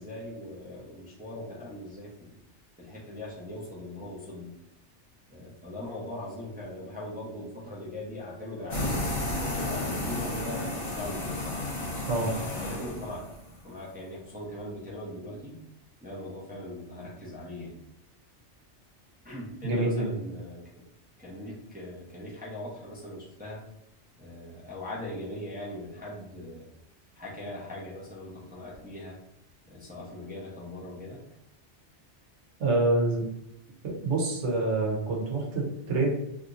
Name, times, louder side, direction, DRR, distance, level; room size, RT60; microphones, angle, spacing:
voice 1, 0.0-2.3 2.8-4.6 5.3-9.1 9.4-11.6 12.3-13.3 13.6-15.6 16.0-17.8 19.2-20.6 21.2-23.6 24.2-26.7 27.1-29.2 29.7-31.2, left 1 dB, 10° right, -6 dB, 0.7 m, -40 dB
sound 1, 8.7-13.5, left 2 dB, 45° left, 1.2 m, -32 dB
voice 2, 19.6-20.1 32.6-33.3 33.8-36.1, right 2 dB, 75° right, -1 dB, 1.3 m, -26 dB
3.3 x 2.8 x 2.5 m, 0.78 s
omnidirectional pair, 1.2 m